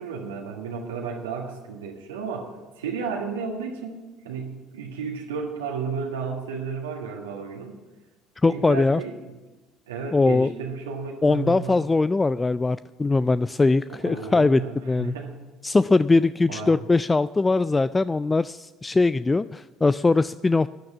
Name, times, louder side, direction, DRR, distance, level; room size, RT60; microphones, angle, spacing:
voice 1, 0.0-7.8 8.4-9.4 9.9-11.8 13.9-15.4 16.5-16.8, right 5 dB, 85° right, 0 dB, 1.6 m, -33 dB
voice 2, 8.4-9.0 10.1-10.5 11.2-15.1 15.6-20.7, left 3 dB, 20° left, 15 dB, 0.3 m, -21 dB
12.0 x 10.5 x 7.3 m, 1.2 s
hypercardioid pair, 60°, 0 cm